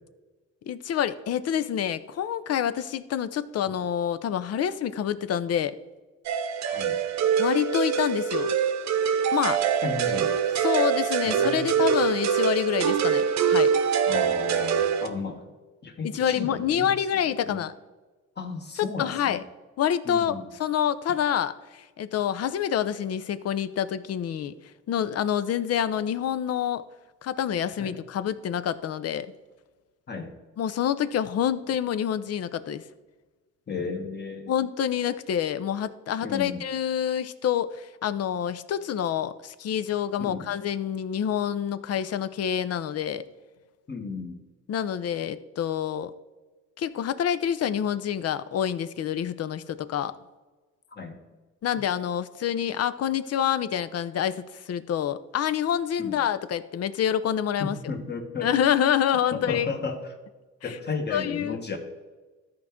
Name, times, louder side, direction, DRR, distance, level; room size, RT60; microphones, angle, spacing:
voice 1, 0.7-5.8 7.4-8.5 9.3-9.6 10.6-13.7 16.0-17.7 19.0-19.4 19.8-24.5 24.9-26.8 27.2-29.3 30.6-32.8 34.5-43.2 44.7-46.1 46.8-50.2 51.6-57.8 58.4-59.7 61.1-61.6, left 9 dB, 55° left, 13 dB, 0.6 m, -27 dB
sound 1, 6.3-15.1, right 7 dB, 65° right, 0.9 m, -24 dB
voice 2, 6.6-7.0 9.8-10.3 11.2-12.0 14.1-15.5 15.8-16.9 17.4-17.6 18.4-19.4 20.0-20.4 27.8-28.0 30.1-30.3 33.7-34.5 36.2-36.6 40.2-40.5 43.9-44.4 50.9-51.2 56.0-56.2 57.6-58.5 59.3-60.2 60.6-61.8, left 4 dB, 35° left, 4 dB, 1.5 m, -34 dB
13.5 x 4.6 x 3.6 m, 1.2 s
cardioid pair, 90°, 30 cm